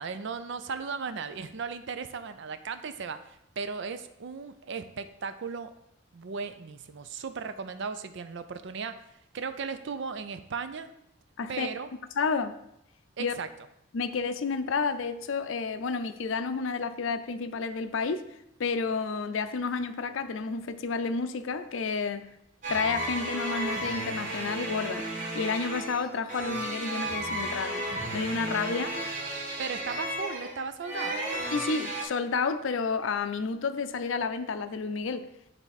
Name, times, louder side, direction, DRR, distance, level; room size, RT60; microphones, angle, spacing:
voice 1, 0.0-5.7 6.1-9.0 9.3-10.9 11.5-11.9 13.2-13.5 28.7-28.9 29.6-31.2, right 5 dB, 65° right, 10 dB, 0.5 m, -36 dB
voice 2, 12.2-12.6 13.2-13.4 13.9-18.2 18.6-22.3 22.7-25.1 25.3-27.9 28.1-28.9 31.5-35.3, left 4 dB, 75° left, 11 dB, 0.5 m, -30 dB
sound 1, 22.6-32.0, right 1 dB, 40° right, 1.5 m, -33 dB
9.6 x 3.4 x 4.1 m, 0.79 s
head